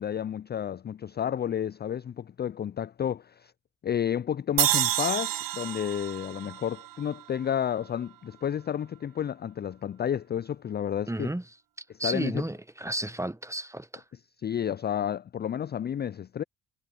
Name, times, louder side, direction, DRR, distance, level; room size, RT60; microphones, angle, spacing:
voice 1, 0.0-3.5 3.8-11.3 12.0-12.4 14.4-16.4, left 9 dB, 25° left, 0.4 m, -31 dB
sound 1, 4.6-7.8, right 14 dB, 45° right, 0.6 m, -29 dB
voice 2, 11.1-11.4 12.0-14.0, right 1 dB, 5° right, 1.1 m, -32 dB
hypercardioid pair, 50°, 47 cm